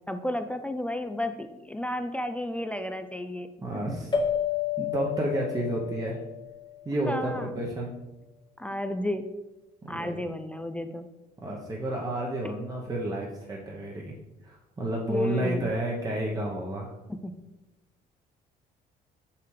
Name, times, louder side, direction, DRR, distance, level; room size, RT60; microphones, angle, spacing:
voice 1, 0.1-3.5 7.1-7.6 8.6-9.3 9.9-11.1 15.1-15.7 17.1-17.4, left 1 dB, 5° left, 8 dB, 0.3 m, -32 dB
voice 2, 3.6-4.2 4.8-6.2 6.8-7.9 9.8-10.2 11.4-14.1 14.4-16.9, right 1 dB, 20° right, -2 dB, 0.9 m, -31 dB
sound 1, 4.1-7.1, left 7 dB, 25° left, 1.0 m, -31 dB
5.8 x 5.7 x 3.3 m, 1.0 s
cardioid pair, 110°, 17 cm